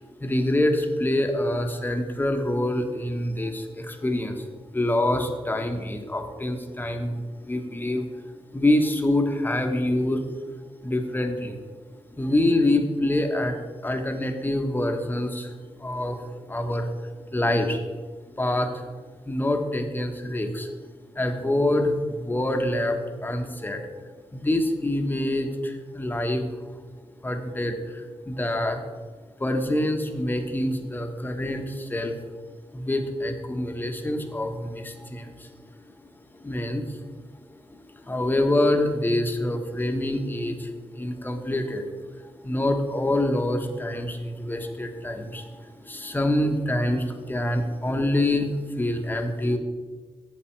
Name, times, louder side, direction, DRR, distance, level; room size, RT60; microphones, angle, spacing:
voice 1, 0.0-4.4 4.7-8.2 8.5-10.2 10.8-11.6 12.2-13.6 13.8-16.2 16.5-17.8 18.4-18.9 19.2-20.9 21.1-23.8 24.3-26.8 27.2-28.9 29.4-32.1 32.7-35.5 36.4-37.1 38.0-41.9 42.2-49.6, left 1 dB, 15° left, 4 dB, 1.1 m, -26 dB
8.3 x 7.1 x 4.5 m, 1.4 s
wide cardioid pair, 85°, 11 cm